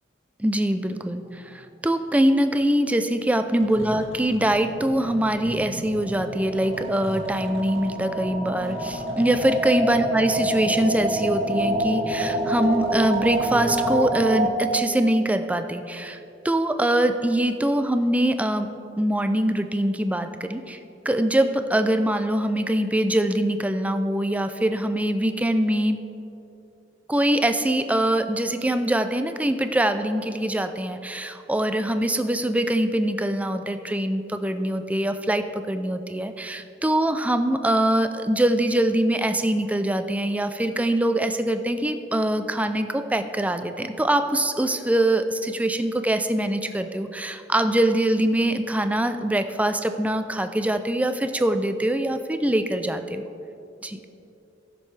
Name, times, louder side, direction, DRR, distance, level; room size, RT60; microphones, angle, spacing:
voice 1, 0.4-16.2 16.4-20.8 21.1-26.0 27.1-53.2 53.8-54.0, right 1 dB, 5° right, 8 dB, 0.4 m, -23 dB
sound 1, 3.6-14.1, equal, 70° left, 2.1 m, -39 dB
sound 2, 5.7-14.5, right 1 dB, 30° right, 1.1 m, -27 dB
18.0 x 6.5 x 3.3 m, 2.8 s
head